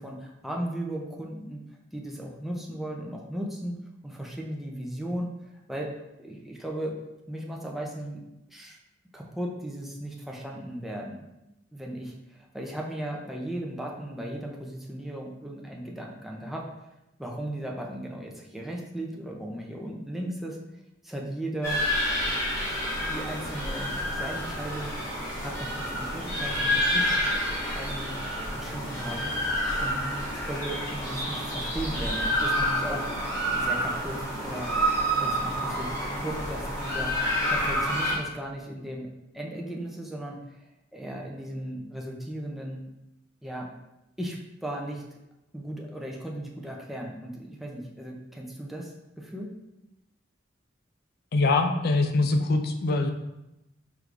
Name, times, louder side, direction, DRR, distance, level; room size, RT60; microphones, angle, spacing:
voice 1, 0.0-1.6 1.9-3.7 4.0-5.3 5.7-5.9 6.2-7.0 7.3-8.8 9.1-11.3 11.7-16.7 17.2-20.6 21.0-21.8 23.1-24.9 25.4-27.2 27.7-28.2 28.5-29.4 29.8-30.0 30.3-33.1 33.5-34.7 35.2-37.2 37.5-39.1 39.3-40.7 40.9-42.8 43.4-43.7 44.2-45.0 45.5-49.6, right 1 dB, ahead, -1 dB, 0.5 m, -36 dB
sound 1, 21.6-38.2, equal, 15° left, 1.4 m, -28 dB
voice 2, 51.3-53.1, left 3 dB, 55° left, 6 dB, 0.4 m, -23 dB
4.7 x 3.4 x 2.5 m, 0.92 s
head